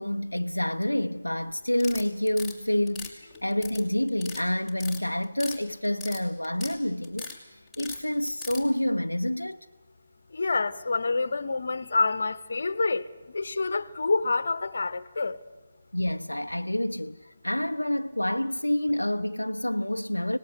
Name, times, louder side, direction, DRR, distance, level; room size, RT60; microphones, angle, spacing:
voice 1, 0.0-9.6 15.9-20.4, left 1 dB, 90° left, 0.6 m, -28 dB
sound 1, 1.7-2.5 2.9-3.8 4.1-4.4 4.7-5.6 5.8-6.8 7.0-7.4 7.7-8.6, left 5 dB, 5° left, 2.8 m, -39 dB
voice 2, 10.3-15.4, left 3 dB, 60° left, 1.1 m, -27 dB
25.5 x 19.0 x 7.9 m
figure-of-eight pair, 145°, 0 cm